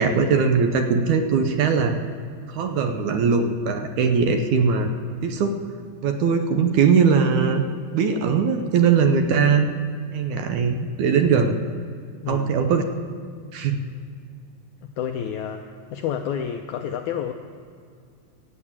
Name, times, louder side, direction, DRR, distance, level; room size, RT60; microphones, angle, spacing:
voice 1, 0.0-2.0 2.5-4.9 5.2-5.6 6.0-7.6 7.9-9.7 10.1-11.6 12.3-12.8 13.5-13.8, right 5 dB, 75° right, 6 dB, 1.9 m, -20 dB
voice 2, 12.2-12.8 15.0-15.6 15.9-17.3, left 8 dB, 85° left, 5 dB, 1.7 m, -29 dB
15.0 x 7.4 x 8.7 m, 2.2 s
omnidirectional pair, 4.1 m